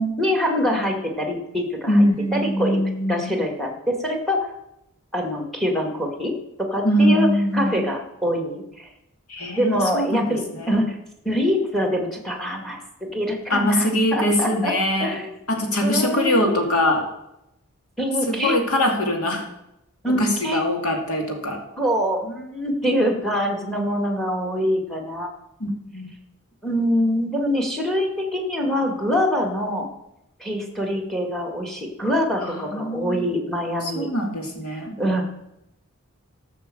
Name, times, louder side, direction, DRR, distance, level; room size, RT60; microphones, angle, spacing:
voice 1, 0.2-2.0 2.3-2.8 3.1-4.5 5.1-6.3 6.6-7.3 7.5-8.9 9.6-11.0 11.3-14.7 15.0-15.3 15.8-16.6 18.0-18.6 20.0-20.6 21.8-25.3 26.6-29.9 30.4-34.1 34.7-35.2, equal, ahead, 3 dB, 2.0 m, -24 dB
voice 2, 1.9-3.3 6.8-7.9 9.3-10.7 13.5-15.2 15.5-17.0 18.3-19.4 20.2-21.6 25.6-26.1 32.4-33.2 33.8-34.9, equal, 70° left, 2 dB, 2.6 m, -22 dB
14.0 x 6.3 x 7.7 m, 0.85 s
head